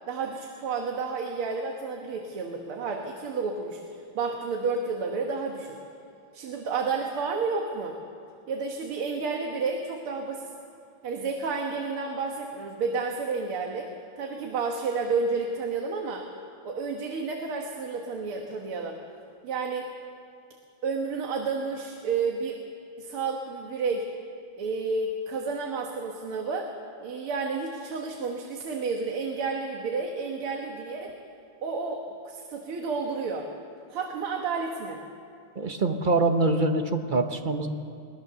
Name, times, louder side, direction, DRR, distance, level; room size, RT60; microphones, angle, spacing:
voice 1, 0.1-3.8 4.1-5.8 6.3-8.0 8.5-10.5 11.0-13.9 14.2-16.3 16.6-19.0 19.4-19.9 20.8-22.6 23.0-24.1 24.6-26.7 27.0-31.1 31.6-33.5 33.9-35.0, right 4 dB, 90° right, 2 dB, 2.3 m, -31 dB
voice 2, 35.5-37.7, right 2 dB, 35° right, 6 dB, 0.8 m, -24 dB
22.5 x 19.0 x 6.9 m, 2.4 s
omnidirectional pair, 2.3 m